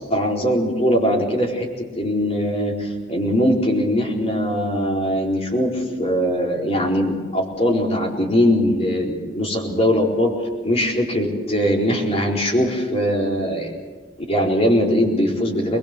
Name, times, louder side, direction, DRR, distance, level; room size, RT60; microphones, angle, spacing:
voice 1, 0.1-1.7 1.9-10.3 10.6-13.7 14.3-15.8, equal, 35° left, -2 dB, 4.3 m, -21 dB
23.5 x 21.0 x 6.9 m, 1.3 s
head